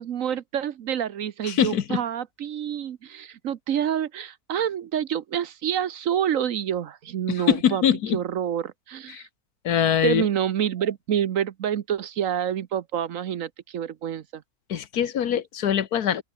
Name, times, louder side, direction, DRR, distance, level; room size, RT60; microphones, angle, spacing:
voice 1, 0.0-7.8 8.1-9.3 10.0-14.4, right 9 dB, 65° right, 1.1 m, -27 dB
voice 2, 1.4-2.0 7.3-8.2 9.1-9.2 9.6-10.3 14.7-16.2, left 9 dB, 75° left, 1.6 m, -23 dB
open air
omnidirectional pair, 1.6 m